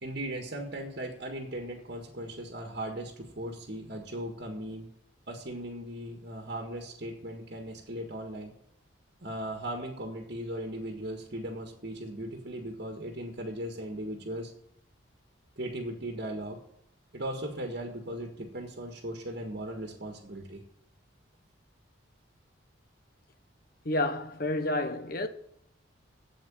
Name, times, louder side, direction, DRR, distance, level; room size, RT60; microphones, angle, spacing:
voice 1, 0.0-4.9 5.3-8.5 9.2-14.5 15.6-16.6 17.1-20.6, right 1 dB, 50° right, 1.7 m, -38 dB
voice 2, 23.8-25.3, left 1 dB, 45° left, 1.0 m, -29 dB
8.8 x 8.0 x 8.7 m
head